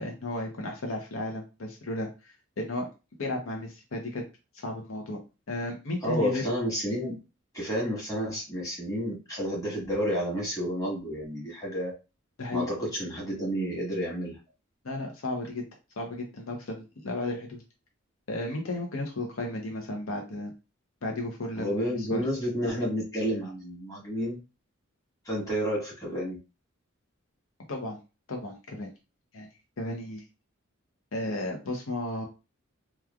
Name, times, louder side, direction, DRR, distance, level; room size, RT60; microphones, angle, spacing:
voice 1, 0.0-2.9 3.2-4.2 4.5-5.2 5.5-6.4 12.4-12.7 14.8-15.6 16.0-17.6 18.3-20.5 21.0-22.2 27.7-28.0 28.3-28.9 29.3-29.5 29.8-30.2 31.1-32.3, left 1 dB, 80° left, 1 dB, 0.7 m, -34 dB
voice 2, 6.0-7.2 7.5-11.9 12.5-14.4 21.6-24.4 25.2-26.4, equal, 15° left, -5 dB, 1.3 m, -30 dB
3.0 x 2.3 x 2.3 m, 0.29 s
head